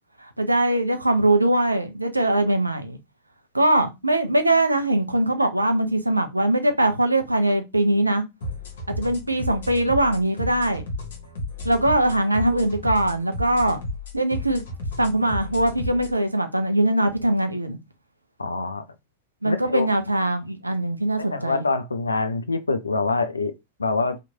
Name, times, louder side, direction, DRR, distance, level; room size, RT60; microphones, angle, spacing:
voice 1, 0.2-3.0 3.5-8.2 9.0-10.9 11.6-13.8 14.1-14.6 15.0-17.8 19.4-21.6, right 1 dB, 85° right, 0.5 m, -21 dB
sound 1, 8.4-16.2, left 1 dB, 60° left, 1.0 m, -33 dB
voice 2, 18.4-18.9 19.4-19.9 21.3-24.2, left 3 dB, 80° left, 0.4 m, -25 dB
2.9 x 2.5 x 2.7 m
figure-of-eight pair, 90°, 0 cm